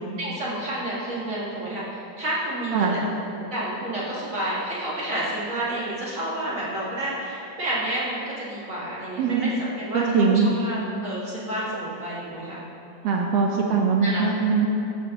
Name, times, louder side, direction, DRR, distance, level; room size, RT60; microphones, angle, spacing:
voice 1, 0.2-3.0 3.5-12.6 14.0-14.2, right 1 dB, 30° right, -7 dB, 1.8 m, -30 dB
voice 2, 9.2-9.5 9.9-10.5 13.0-14.7, right 5 dB, 80° right, 1 dB, 1.4 m, -21 dB
14.0 x 8.4 x 3.0 m, 2.8 s
omnidirectional pair, 3.7 m